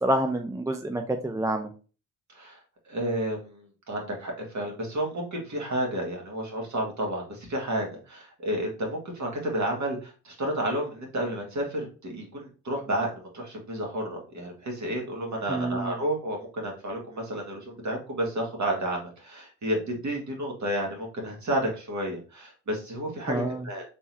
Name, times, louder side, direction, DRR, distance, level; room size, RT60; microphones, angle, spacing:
voice 1, 0.0-1.7 15.5-16.0 23.3-23.6, right 1 dB, 10° right, 5 dB, 0.5 m, -28 dB
voice 2, 2.9-23.8, right 1 dB, 40° right, 0 dB, 2.1 m, -31 dB
4.3 x 3.6 x 2.8 m, 0.35 s
hypercardioid pair, 50°, 42 cm